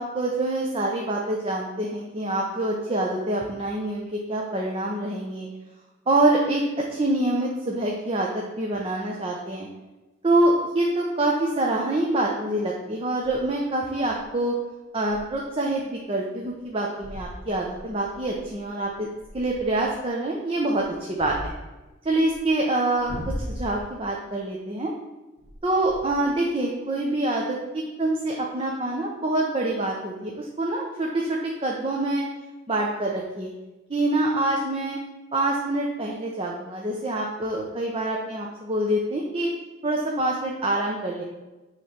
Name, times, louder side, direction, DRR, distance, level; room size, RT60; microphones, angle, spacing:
voice 1, 0.0-5.5 6.1-9.7 10.2-14.6 14.9-19.1 19.3-21.5 22.0-23.2 23.5-24.9 25.6-32.2 32.7-33.5 33.9-35.0 35.3-39.5 39.8-41.2, right 1 dB, 30° right, -1 dB, 0.7 m, -26 dB
sound 1, 9.5-9.6 13.2-13.5 13.9-14.2 14.6-14.7 15.0-15.3 15.8-16.0 16.5-16.6 17.0-19.9 20.6-22.4 22.9-24.0 25.4-26.4, equal, 70° right, 1.3 m, -39 dB
9.4 x 3.3 x 5.7 m, 1.1 s
head